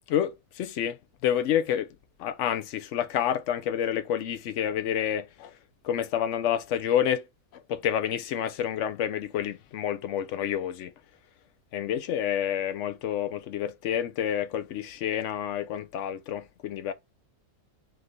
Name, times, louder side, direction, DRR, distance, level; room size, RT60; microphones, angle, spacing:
voice 1, 0.1-1.9 2.2-5.5 5.8-7.3 7.5-10.9 11.7-16.9, left 10 dB, 65° left, 0.8 m, -29 dB
3.6 x 3.1 x 3.8 m
omnidirectional pair, 1.5 m